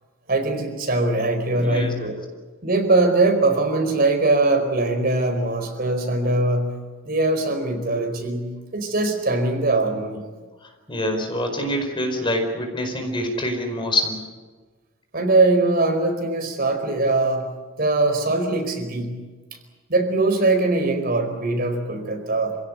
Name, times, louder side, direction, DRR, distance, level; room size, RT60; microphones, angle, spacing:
voice 1, 0.3-2.2 2.6-6.7 7.0-8.5 8.7-10.2 15.1-17.4 17.8-19.1 19.9-22.6, right 2 dB, 50° right, 5 dB, 4.6 m, -21 dB
voice 2, 1.5-1.9 10.6-14.2, left 1 dB, 25° left, 4 dB, 4.7 m, -26 dB
28.0 x 17.0 x 9.4 m, 1.4 s
head